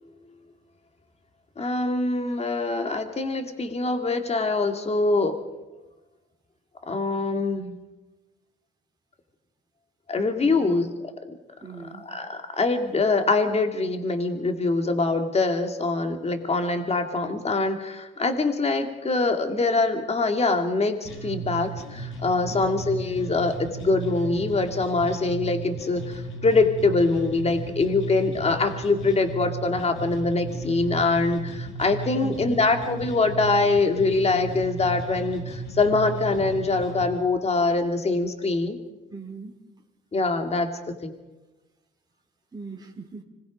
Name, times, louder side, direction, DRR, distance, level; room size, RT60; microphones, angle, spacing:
voice 1, 1.6-5.3 6.9-7.7 10.1-10.9 11.3-11.4 12.1-38.8 40.1-40.7 41.0-41.1, left 3 dB, 30° left, 6 dB, 2.4 m, -24 dB
voice 2, 10.4-10.7 11.6-12.0 22.5-22.7 32.2-32.6 39.1-39.5 42.5-43.2, right 4 dB, 20° right, 0 dB, 3.4 m, -40 dB
sound 1, 21.0-37.0, right 3 dB, 75° left, 7.4 m, -35 dB
26.0 x 20.0 x 5.2 m, 1.1 s
cardioid pair, 90°, 20 cm